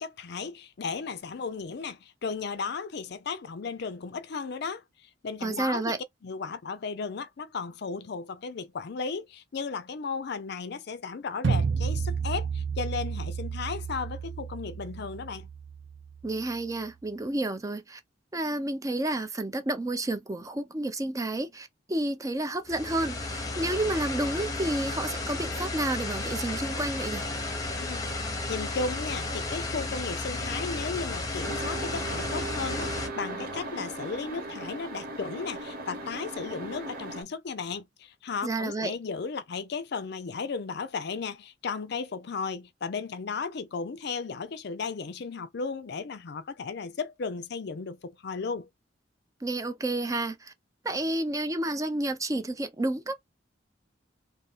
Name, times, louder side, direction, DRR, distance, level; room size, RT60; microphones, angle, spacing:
voice 1, 0.0-4.8 5.2-15.5 27.8-28.0 28.5-48.7, left 5 dB, 60° left, 0.5 m, -35 dB
voice 2, 5.4-6.0 16.2-18.0 18.3-27.3 38.4-38.9 49.4-50.5 50.8-53.1, right 2 dB, 20° right, 0.5 m, -30 dB
sound 1, 11.4-16.5, right 5 dB, 70° right, 0.5 m, -31 dB
sound 2, 22.7-33.1, left 2 dB, 20° left, 0.8 m, -33 dB
sound 3, 31.4-37.2, right 2 dB, 50° right, 1.1 m, -37 dB
2.7 x 2.7 x 3.5 m
head